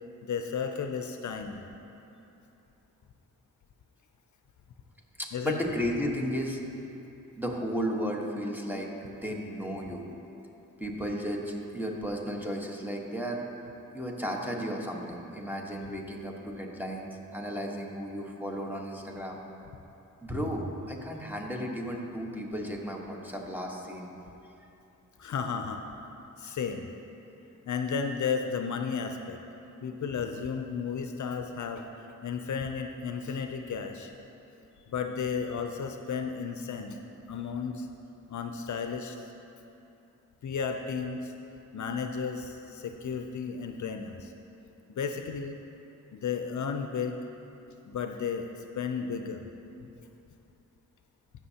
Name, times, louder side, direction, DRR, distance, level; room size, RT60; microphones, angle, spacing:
voice 1, 0.2-1.6 5.3-5.6 25.2-25.8 26.4-26.9 27.7-29.4 29.8-31.8 32.2-34.1 34.9-37.0 37.3-37.9 38.3-39.2 40.4-41.3 41.7-44.3 44.9-45.6 46.1-47.2 47.9-48.5 48.7-49.4, left 6 dB, 65° left, 5 dB, 0.5 m, -33 dB
voice 2, 5.2-6.6 7.4-8.9 9.2-10.1 10.8-13.4 13.9-19.4 20.2-24.1, equal, 5° right, -1 dB, 1.2 m, -34 dB
14.5 x 6.0 x 2.8 m, 2.9 s
cardioid pair, 60°, 32 cm